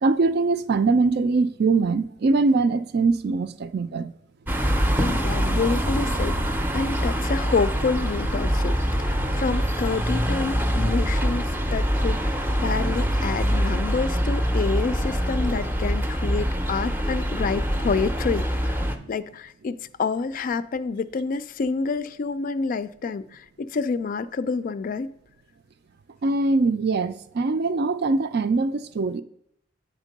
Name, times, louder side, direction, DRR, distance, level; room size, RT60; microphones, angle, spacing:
voice 1, 0.0-4.1 18.9-19.1 26.2-29.2, right 3 dB, 60° right, 0.4 m, -22 dB
sound 1, 4.5-19.0, equal, 10° right, 0.6 m, -24 dB
voice 2, 5.0-18.8 19.1-25.1, left 4 dB, 50° left, 0.3 m, -28 dB
9.0 x 3.6 x 5.2 m
head